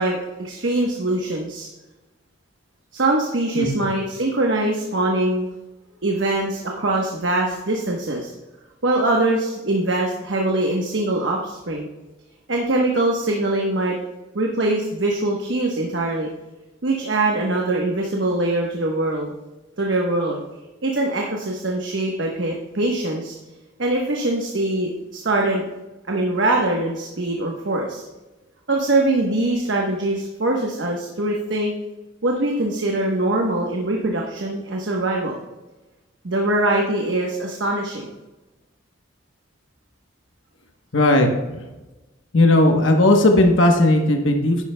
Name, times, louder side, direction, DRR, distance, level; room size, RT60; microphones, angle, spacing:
voice 1, 0.0-1.7 2.9-5.5 6.0-8.3 8.8-11.9 12.5-14.0 14.3-16.3 16.8-19.3 19.8-20.4 20.8-23.4 23.8-25.7 26.1-28.0 28.7-31.7 32.2-35.3 36.2-38.1, right 2 dB, 65° right, 0 dB, 1.1 m, -22 dB
voice 2, 40.9-41.6 42.3-44.6, left 1 dB, 75° left, 3 dB, 1.1 m, -16 dB
11.0 x 9.8 x 2.3 m, 1.1 s
head